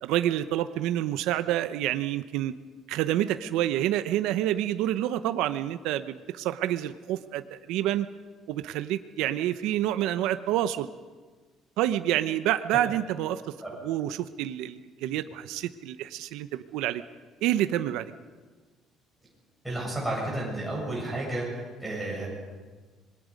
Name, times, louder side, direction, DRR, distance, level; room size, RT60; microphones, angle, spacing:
voice 1, 0.0-2.5 2.9-8.1 8.5-10.9 11.8-13.4 13.8-17.0 17.4-18.1, right 12 dB, 80° right, 11 dB, 0.7 m, -28 dB
voice 2, 19.6-21.5 21.8-22.3, right 1 dB, 5° right, -4 dB, 7.9 m, -31 dB
26.5 x 21.0 x 5.3 m, 1.4 s
cardioid pair, 160°, 0 cm